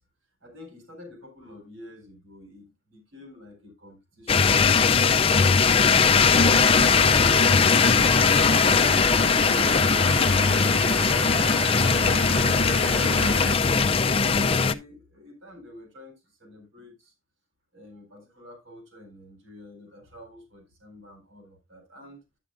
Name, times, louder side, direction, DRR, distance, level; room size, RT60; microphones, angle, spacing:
voice 1, 0.4-4.5 13.9-17.1 17.7-22.2, left 1 dB, 75° right, 3.9 m, -47 dB
sound 1, 4.3-14.7, left 5 dB, 30° left, 0.4 m, -20 dB
sound 2, 6.2-13.6, right 6 dB, 60° right, 0.4 m, -34 dB
11.0 x 8.8 x 2.5 m
head